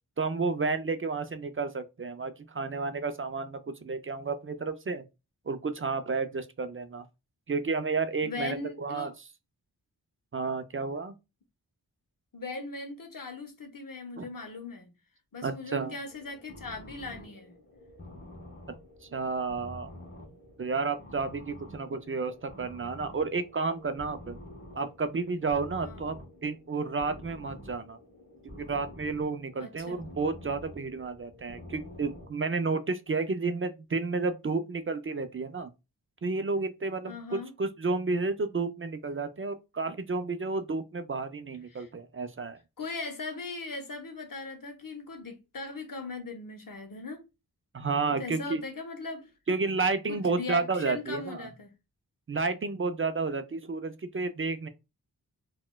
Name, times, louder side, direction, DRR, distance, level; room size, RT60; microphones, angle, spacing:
voice 1, 0.2-5.0 5.5-7.0 7.5-9.1 10.3-11.1 14.2-14.3 15.4-15.9 19.1-19.9 20.6-24.4 24.8-28.0 28.4-35.7 36.2-42.6 47.7-48.6 49.5-51.5 52.3-54.7, right 4 dB, 35° right, 0.4 m, -31 dB
voice 2, 8.2-9.2 12.3-14.9 15.3-17.5 25.8-26.1 29.6-30.0 37.0-37.5 41.7-41.9 42.8-47.2 48.1-49.3 50.1-51.7, left 3 dB, 55° left, 0.7 m, -39 dB
sound 1, 16.0-32.3, left 1 dB, 30° left, 0.9 m, -48 dB
3.9 x 2.2 x 2.2 m
wide cardioid pair, 50°, 39 cm